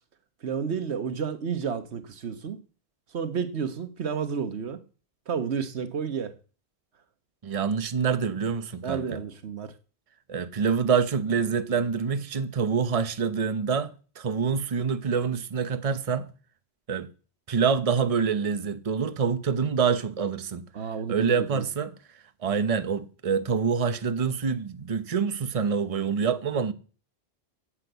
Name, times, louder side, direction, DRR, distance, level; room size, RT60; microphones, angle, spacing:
voice 1, 0.4-2.6 3.1-4.8 5.3-6.3 8.8-9.7 20.7-21.6, right 6 dB, 90° right, 1.4 m, -31 dB
voice 2, 7.4-9.2 10.3-16.3 16.9-17.1 17.5-20.6 21.1-21.9 22.4-26.7, right 6 dB, 35° right, 0.9 m, -26 dB
9.6 x 8.1 x 8.1 m
omnidirectional pair, 1.1 m